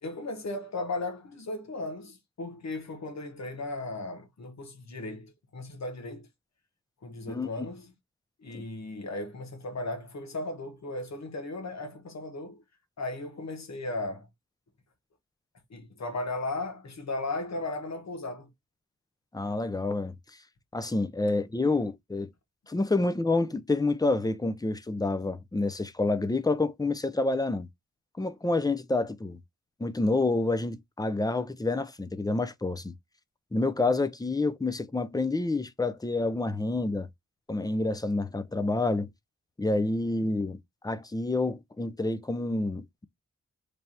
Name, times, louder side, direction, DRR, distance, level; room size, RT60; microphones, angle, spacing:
voice 1, 0.0-6.3 7.0-7.9 8.4-12.6 13.0-14.3 15.7-18.5, left 2 dB, 65° left, 1.3 m, -36 dB
voice 2, 7.3-7.7 8.5-8.6 19.3-20.1 20.7-22.3 22.7-27.7 28.2-29.4 29.8-32.9 33.5-37.1 37.5-39.1 39.6-43.0, left 2 dB, 15° left, 0.6 m, -28 dB
3.4 x 2.4 x 4.2 m
cardioid pair, 70°, 29 cm